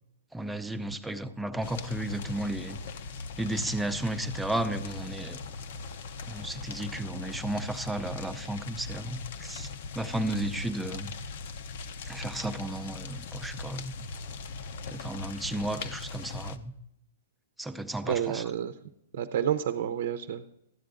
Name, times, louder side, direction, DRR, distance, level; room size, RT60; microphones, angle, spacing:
voice 1, 0.3-2.8 3.4-5.4 6.3-9.7 9.9-11.1 12.0-14.1 14.9-16.7 17.6-18.4, right 1 dB, 5° right, 7 dB, 0.5 m, -33 dB
sound 1, 1.6-16.6, left 4 dB, 55° left, 0.7 m, -40 dB
voice 2, 18.0-18.7 19.1-20.5, right 9 dB, 60° right, 9 dB, 0.7 m, -29 dB
13.5 x 9.3 x 3.8 m, 0.81 s
hypercardioid pair, 150°, 0 cm